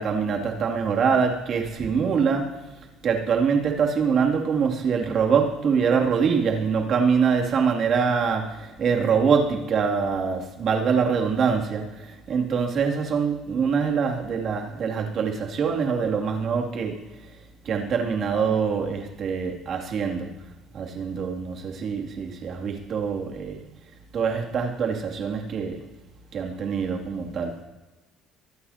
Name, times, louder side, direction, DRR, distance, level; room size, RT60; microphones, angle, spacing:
voice 1, 0.0-2.5 3.0-17.0 17.6-20.4 20.7-23.6 24.1-25.8 26.3-27.6, right 6 dB, 50° right, 0 dB, 2.8 m, -24 dB
24.0 x 13.0 x 2.9 m, 1.2 s
cardioid pair, 120°, 0 cm